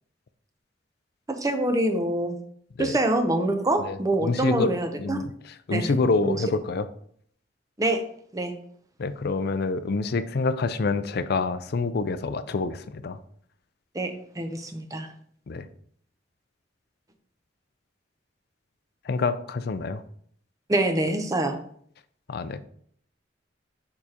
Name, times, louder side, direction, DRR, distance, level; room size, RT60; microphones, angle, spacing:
voice 1, 1.3-2.4 2.8-5.3 5.7-5.9 6.2-6.4 7.8-8.0 8.3-8.5 13.9-15.1 20.7-21.6, right 1 dB, 20° right, 6 dB, 0.7 m, -25 dB
voice 2, 3.8-4.7 5.0-6.9 9.0-13.2 15.5-15.7 19.1-20.0 22.3-22.7, left 3 dB, 60° left, 12 dB, 0.4 m, -27 dB
6.8 x 4.8 x 2.9 m, 0.62 s
head